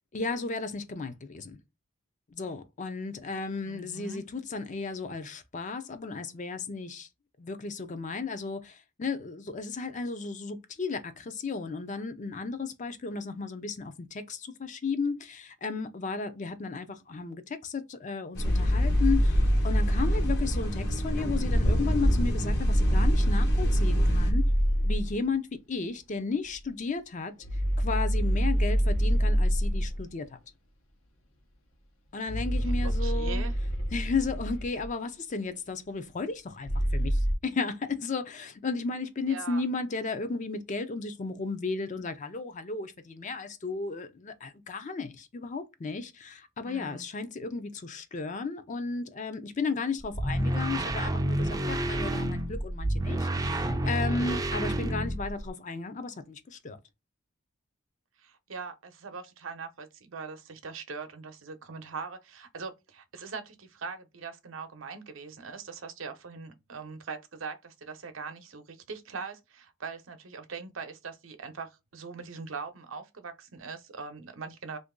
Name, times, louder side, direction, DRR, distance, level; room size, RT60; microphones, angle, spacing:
voice 1, 0.1-1.6 2.3-7.1 7.4-24.4 24.8-30.4 32.1-33.4 33.9-56.8, left 4 dB, 40° left, 0.5 m, -34 dB
voice 2, 3.7-4.2 33.0-33.5 39.3-39.6 46.6-47.0 58.2-74.8, right 5 dB, 85° right, 0.7 m, -41 dB
sound 1, 18.3-24.3, equal, 60° left, 0.9 m, -27 dB
sound 2, 18.4-20.8 22.6-25.1 27.4-30.0 32.3-34.9 36.7-37.3, equal, 80° left, 0.9 m, -26 dB
sound 3, 50.0-55.5, right 1 dB, 20° right, 0.4 m, -29 dB
2.9 x 2.6 x 3.6 m
head